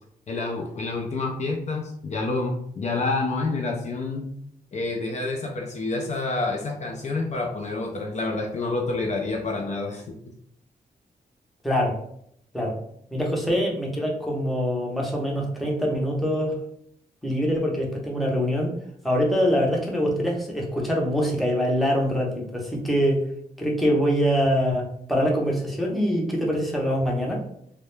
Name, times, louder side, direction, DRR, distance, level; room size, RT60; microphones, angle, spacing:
voice 1, 0.3-4.3 4.7-10.2, left 3 dB, 45° left, 1 dB, 0.4 m, -28 dB
voice 2, 11.6-12.0 12.5-12.8 13.1-16.6 17.2-18.7 19.0-23.2 23.6-27.4, equal, ahead, -2 dB, 0.6 m, -24 dB
2.2 x 2.1 x 3.1 m, 0.70 s
wide cardioid pair, 115°, 16 cm